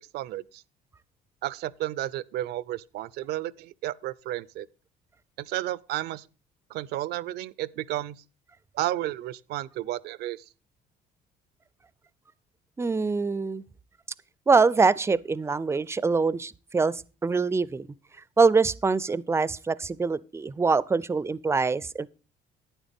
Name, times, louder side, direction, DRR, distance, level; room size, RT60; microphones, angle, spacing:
voice 1, 0.1-0.6 1.4-4.7 5.4-6.3 6.7-8.2 8.7-10.4, right 15 dB, 75° right, 0.5 m, -32 dB
voice 2, 12.8-13.6 14.5-17.9 18.4-22.1, right 4 dB, 15° right, 0.4 m, -24 dB
11.5 x 9.2 x 3.5 m
cardioid pair, 110°, 17 cm